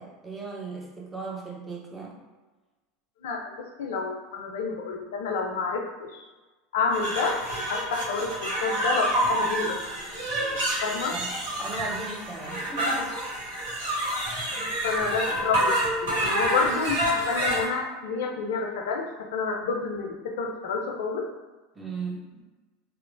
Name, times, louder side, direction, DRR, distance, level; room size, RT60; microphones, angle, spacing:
voice 1, 0.0-2.2 11.1-11.3 11.6-13.1 21.8-22.3, right 3 dB, 10° right, -2 dB, 0.7 m, -36 dB
voice 2, 3.8-6.3 6.7-7.4 7.7-10.0 10.3-11.2 14.6-19.0 19.3-21.3, left 4 dB, 70° left, 2 dB, 0.4 m, -29 dB
sound 1, 6.9-17.6, right 1 dB, 75° right, 1.0 m, -28 dB
2.9 x 2.0 x 2.5 m, 1.2 s
hypercardioid pair, 80°, 0 cm